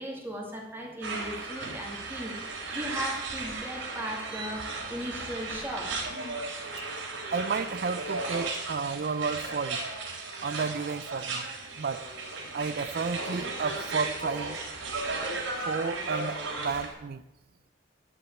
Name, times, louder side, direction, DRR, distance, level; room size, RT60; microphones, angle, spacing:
voice 1, 0.0-2.4 2.7-6.1, equal, 10° right, -1 dB, 2.5 m, -37 dB
sound 1, 1.0-16.9, right 3 dB, 85° right, 3.5 m, -35 dB
voice 2, 7.3-9.8 10.4-11.5 11.8-12.0 12.5-14.6 15.6-17.2, right 5 dB, 50° right, 14 dB, 0.4 m, -32 dB
11.0 x 7.8 x 8.3 m, 0.95 s
head